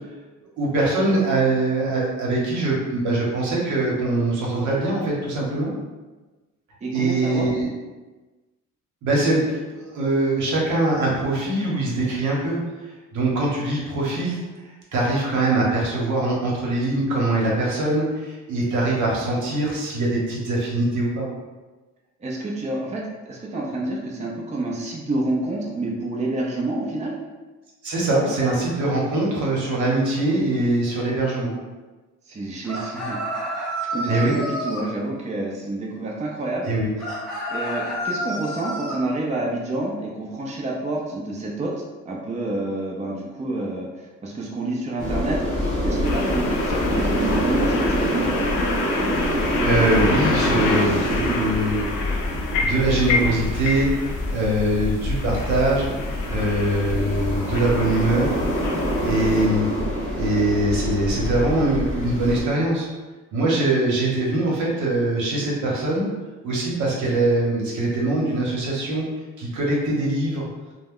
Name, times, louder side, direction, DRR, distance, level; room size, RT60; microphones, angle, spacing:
voice 1, 0.6-5.7 6.9-7.7 9.0-12.6 13.1-14.4 14.9-21.3 27.8-31.5 34.1-34.4 36.6-36.9 49.6-53.9 54.3-55.9 56.3-58.3 59.0-59.7 60.1-62.9 63.3-66.1 66.4-69.0 69.4-70.5, right 2 dB, 75° right, -4 dB, 1.0 m, -22 dB
voice 2, 6.8-7.5 22.2-27.2 32.3-33.2 33.9-36.7 37.5-41.7 42.0-45.4 45.8-48.3, right 2 dB, 25° right, -2 dB, 0.5 m, -28 dB
sound 1, 32.6-34.9 37.0-39.0, equal, ahead, 0.8 m, -29 dB
sound 2, 45.0-62.4, equal, 25° left, 1.0 m, -25 dB
sound 3, 46.0-59.5, left 3 dB, 80° left, 0.5 m, -30 dB
2.2 x 2.1 x 3.5 m, 1.2 s
cardioid pair, 90°, 30 cm